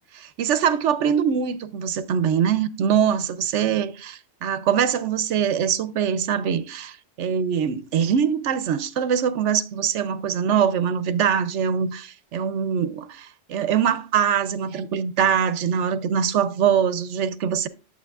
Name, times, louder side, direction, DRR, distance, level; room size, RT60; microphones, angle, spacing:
voice 1, 0.1-17.7, right 8 dB, 90° right, 1.0 m, -23 dB
11.5 x 7.4 x 2.3 m
omnidirectional pair, 1.2 m